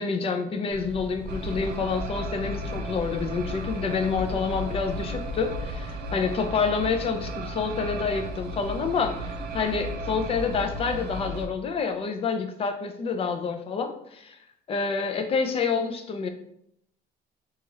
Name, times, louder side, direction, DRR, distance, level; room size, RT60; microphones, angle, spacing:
voice 1, 0.0-14.4 14.7-16.3, left 5 dB, 35° left, 6 dB, 0.4 m, -28 dB
sound 1, 0.7-5.8, equal, 85° left, 1.0 m, -40 dB
sound 2, 1.3-11.5, equal, 70° right, 0.4 m, -34 dB
2.8 x 2.4 x 3.0 m, 0.71 s
cardioid pair, 110°, 17 cm